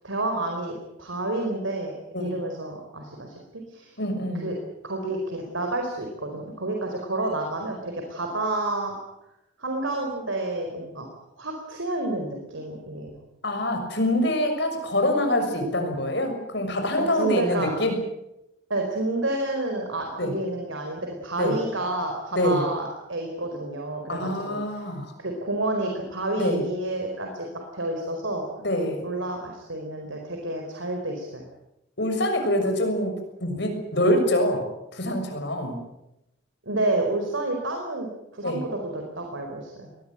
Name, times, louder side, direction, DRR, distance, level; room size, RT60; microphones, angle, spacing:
voice 1, 0.0-1.9 2.2-4.0 4.4-4.5 4.8-9.0 9.6-11.1 11.4-13.2 17.1-17.8 18.7-24.6 25.2-27.5 27.7-28.4 29.0-31.5 36.6-38.1 38.3-39.9, right 2 dB, 80° right, 2 dB, 4.7 m, -29 dB
voice 2, 4.0-4.5 13.4-18.0 20.2-20.3 21.4-21.5 22.3-22.6 24.1-25.1 26.4-26.6 28.6-29.0 32.0-33.1 33.4-35.8 38.4-38.6, left 1 dB, 55° left, 5 dB, 6.6 m, -25 dB
22.5 x 19.5 x 9.2 m, 0.88 s
head